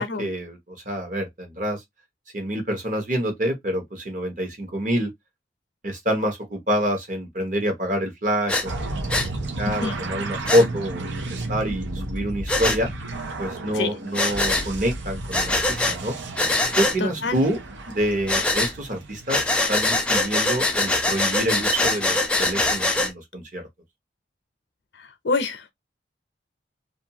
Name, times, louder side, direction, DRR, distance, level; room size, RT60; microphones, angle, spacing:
voice 1, 0.0-1.8 2.3-5.1 5.8-9.3 9.6-12.9 13.4-16.1 16.8-17.6 17.9-19.4 19.7-23.6, equal, 45° right, 1.0 m, -26 dB
Breathing, 8.5-8.7 9.1-9.3 10.5-10.6 12.5-12.8 14.1-14.7 15.3-16.0 16.4-17.0 18.3-18.7 19.3-23.1, left 2 dB, 5° left, 0.4 m, -23 dB
sound 1, 8.6-19.8, right 2 dB, 80° right, 0.7 m, -33 dB
voice 2, 17.0-17.4 25.2-25.6, left 4 dB, 70° left, 0.6 m, -26 dB
2.5 x 2.3 x 2.8 m
head